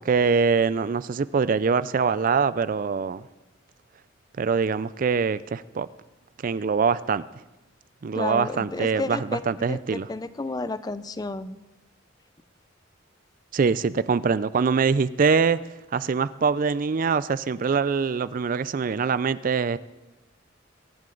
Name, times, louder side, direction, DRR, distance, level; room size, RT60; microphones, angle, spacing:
voice 1, 0.0-3.2 4.4-5.9 6.4-7.2 8.0-10.1 13.5-15.6 15.9-19.8, right 5 dB, 45° right, 16 dB, 0.4 m, -23 dB
voice 2, 8.1-11.6, left 2 dB, 20° left, 14 dB, 0.4 m, -32 dB
23.0 x 11.0 x 3.9 m, 1.0 s
head